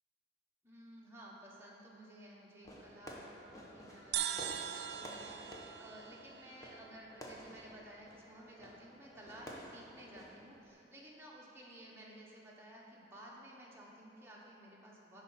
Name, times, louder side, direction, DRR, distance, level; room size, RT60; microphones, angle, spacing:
voice 1, 0.6-15.2, right 1 dB, 15° right, -4 dB, 1.0 m, -55 dB
Fireworks, 2.6-10.7, equal, 20° left, 0.7 m, -52 dB
sound 1, 4.1-7.6, right 10 dB, 60° right, 0.3 m, -42 dB
10.0 x 3.7 x 5.6 m, 2.8 s
head